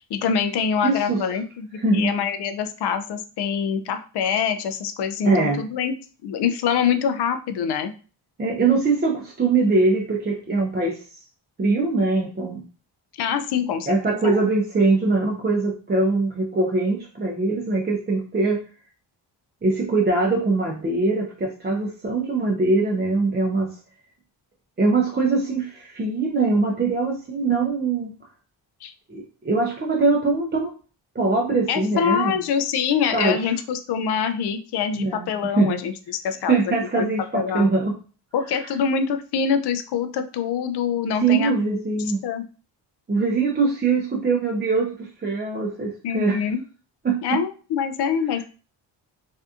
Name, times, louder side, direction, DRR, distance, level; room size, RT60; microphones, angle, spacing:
voice 1, 0.1-5.9 6.2-7.9 13.2-14.4 28.8-28.9 31.7-35.9 36.2-36.6 37.0-37.1 37.3-37.7 38.3-41.8 42.2-42.4 46.0-46.6 47.2-48.4, left 7 dB, 60° left, 9 dB, 0.5 m, -25 dB
voice 2, 0.8-1.2 1.8-2.1 5.2-5.6 8.4-11.2 11.6-12.6 13.9-18.6 19.6-23.8 24.8-28.1 29.1-30.7 31.1-32.4 33.1-33.5 34.9-35.3 35.6-35.8 36.5-38.0 38.6-38.7 41.2-42.2 43.1-46.4 47.0-47.4, right 3 dB, 20° right, -2 dB, 0.5 m, -22 dB
2.7 x 2.3 x 2.4 m, 0.37 s
cardioid pair, 65°, 47 cm